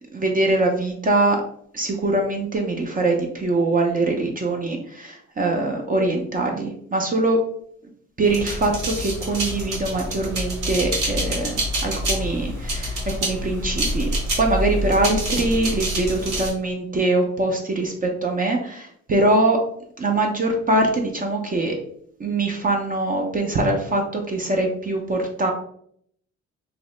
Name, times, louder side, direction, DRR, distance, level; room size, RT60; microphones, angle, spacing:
voice 1, 0.1-1.4 1.7-7.4 8.2-19.6 20.0-21.7 22.2-25.5, right 2 dB, 30° right, 2 dB, 0.5 m, -23 dB
sound 1, 8.3-16.5, right 1 dB, 75° right, 1.4 m, -27 dB
2.8 x 2.0 x 3.1 m, 0.65 s
cardioid pair, 90°, 30 cm